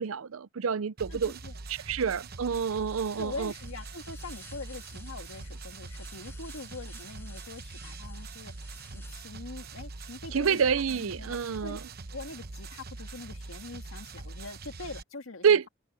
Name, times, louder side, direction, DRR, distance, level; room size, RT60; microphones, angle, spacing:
voice 1, 0.0-1.4 1.7-3.5 10.3-11.8 15.4-15.7, right 6 dB, 85° right, 0.6 m, -27 dB
sound 1, 1.0-15.0, right 3 dB, 50° right, 1.0 m, -43 dB
voice 2, 1.1-1.6 3.1-11.8 12.1-15.7, left 3 dB, 90° left, 1.8 m, -43 dB
sound 2, 2.7-9.5, left 3 dB, 10° left, 5.4 m, -55 dB
head